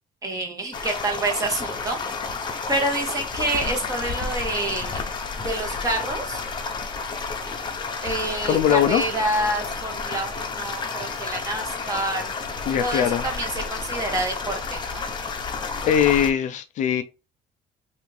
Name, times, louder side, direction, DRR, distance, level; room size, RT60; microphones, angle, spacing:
voice 1, 0.2-2.0 2.4-5.0 5.4-6.4 8.0-12.3 12.8-15.1, right 2 dB, 25° right, 1.1 m, -28 dB
sound 1, 0.7-16.3, left 4 dB, 30° left, 0.7 m, -31 dB
voice 2, 8.5-9.0 12.7-13.3 15.9-17.0, left 9 dB, 55° left, 0.4 m, -20 dB
3.3 x 2.4 x 3.2 m
cardioid pair, 130°, 15 cm